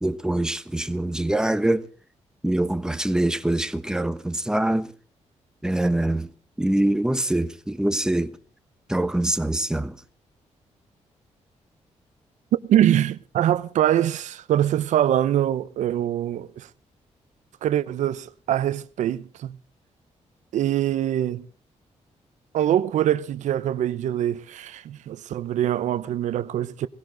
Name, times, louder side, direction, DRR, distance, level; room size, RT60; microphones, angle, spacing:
voice 1, 0.0-1.9 2.4-4.9 5.6-6.3 6.6-8.3 8.9-10.0, right 1 dB, 5° right, 1.1 m, -24 dB
voice 2, 12.7-16.7 17.6-19.6 20.5-21.5 22.5-26.9, right 11 dB, 90° right, 0.8 m, -23 dB
19.5 x 16.5 x 3.9 m
cardioid pair, 95°, 12 cm